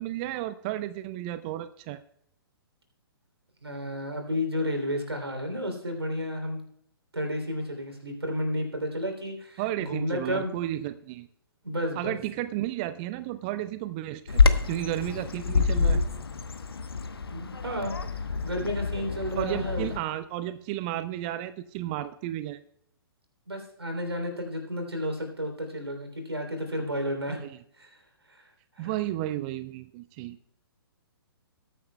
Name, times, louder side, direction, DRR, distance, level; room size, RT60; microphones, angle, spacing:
voice 1, 0.0-2.0 9.6-11.3 12.0-16.0 19.4-22.6 27.4-27.6 28.8-30.4, right 14 dB, 25° right, 14 dB, 0.3 m, -33 dB
voice 2, 3.6-6.6 7.1-10.5 11.6-12.2 17.3-18.0 18.4-19.9 23.5-27.4 27.8-28.0 28.3-28.9, equal, 80° right, 5 dB, 3.0 m, -32 dB
Bird vocalization bird call bird song, 14.3-20.0, left 4 dB, 70° left, 1.0 m, -27 dB
20.0 x 9.3 x 2.2 m, 0.72 s
figure-of-eight pair, 125°, 13 cm